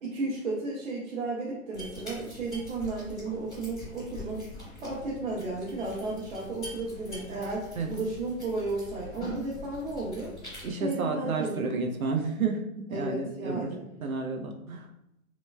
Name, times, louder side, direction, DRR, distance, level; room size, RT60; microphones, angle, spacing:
voice 1, 0.0-4.5 4.8-10.3 10.7-11.7 12.9-13.8, right 2 dB, 55° right, -6 dB, 1.0 m, -33 dB
sound 1, 1.7-10.7, left 2 dB, 5° left, 0.4 m, -44 dB
voice 2, 10.6-13.8 14.0-14.8, right 4 dB, 80° right, 3 dB, 0.7 m, -31 dB
3.2 x 3.0 x 2.2 m, 0.83 s
hypercardioid pair, 145°, 42 cm